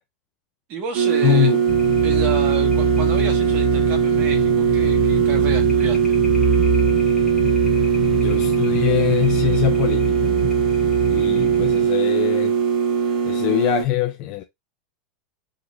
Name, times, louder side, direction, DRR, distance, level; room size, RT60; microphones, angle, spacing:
voice 1, 0.7-1.5 2.0-6.1, right 5 dB, 45° right, 1.4 m, -31 dB
sound 1, 0.9-13.8, right 7 dB, 75° right, 1.9 m, -20 dB
voice 2, 1.2-1.6 8.1-10.4 11.1-12.6 13.2-14.4, left 13 dB, 45° left, 0.4 m, -23 dB
sound 2, 1.7-11.9, right 2 dB, 10° left, 1.5 m, -26 dB
3.8 x 2.8 x 2.4 m
supercardioid pair, 130°, 4 cm